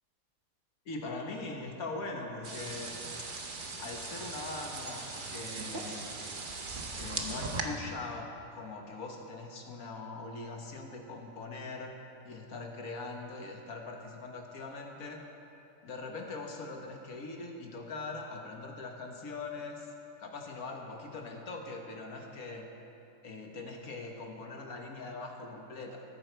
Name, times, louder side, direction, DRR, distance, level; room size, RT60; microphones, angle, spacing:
voice 1, 0.9-2.9 3.2-3.3 3.8-6.1 7.0-12.0 12.2-15.2 15.8-19.9 20.2-22.7 23.2-26.0, left 3 dB, 60° left, 2 dB, 1.5 m, -41 dB
sound 1, 2.4-7.6, right 3 dB, 40° right, 0.9 m, -39 dB
19.5 x 8.5 x 4.5 m, 2.9 s
omnidirectional pair, 1.8 m